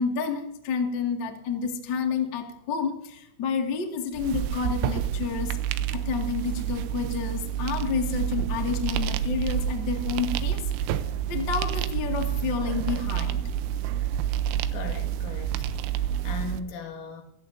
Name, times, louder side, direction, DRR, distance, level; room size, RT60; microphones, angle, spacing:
voice 1, 0.0-5.6 5.9-10.6 11.3-13.4, left 6 dB, 65° left, 1.1 m, -29 dB
sound 1, 4.1-16.6, right 10 dB, 85° right, 3.3 m, -29 dB
voice 2, 14.7-15.7 16.0-17.2, left 4 dB, 80° left, 4.7 m, -38 dB
25.5 x 14.5 x 2.7 m
omnidirectional pair, 5.9 m